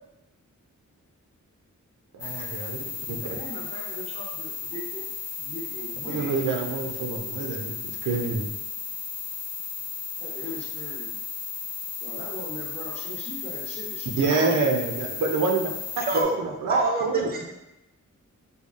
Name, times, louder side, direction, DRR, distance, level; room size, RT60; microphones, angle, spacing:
voice 1, 2.1-3.4 6.1-8.5 14.2-17.3, right 4 dB, 80° right, 3 dB, 0.5 m, -27 dB
sound 1, 2.2-16.2, left 5 dB, 55° left, 0.5 m, -35 dB
voice 2, 3.3-5.0 5.4-6.3 10.2-11.1 12.0-14.5, left 1 dB, 20° left, -8 dB, 0.7 m, -39 dB
voice 3, 16.1-16.4 16.7-17.5, right 3 dB, 30° right, 1 dB, 0.5 m, -25 dB
5.1 x 2.3 x 2.4 m, 0.93 s
wide cardioid pair, 145°, 31 cm